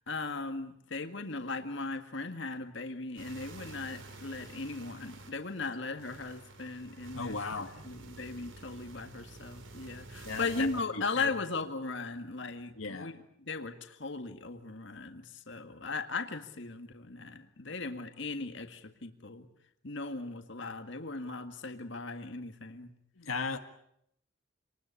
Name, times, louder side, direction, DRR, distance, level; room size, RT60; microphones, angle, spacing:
voice 1, 0.1-7.3 7.9-13.1 13.4-19.5 19.8-22.9, left 3 dB, 60° left, 1.9 m, -38 dB
sound 1, 3.2-10.8, right 3 dB, 65° right, 3.2 m, -50 dB
voice 2, 7.1-7.7 10.2-11.3 12.7-13.2 23.2-23.6, left 4 dB, 85° left, 1.8 m, -36 dB
27.0 x 20.0 x 8.4 m
head